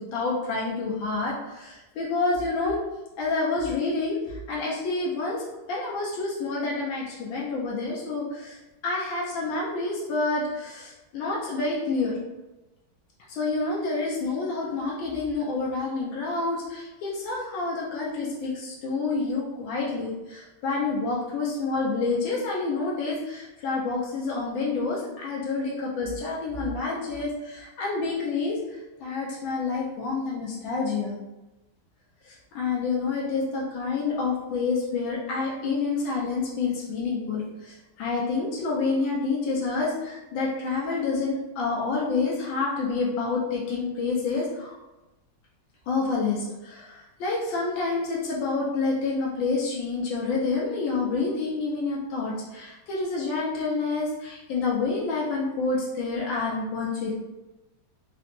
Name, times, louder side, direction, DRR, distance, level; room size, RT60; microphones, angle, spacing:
voice 1, 0.1-2.8 3.2-8.6 8.8-12.2 13.3-28.6 29.0-31.2 32.2-44.8 45.9-57.1, left 3 dB, 80° left, -4 dB, 1.3 m, -28 dB
3.8 x 2.1 x 2.9 m, 1.0 s
omnidirectional pair, 2.2 m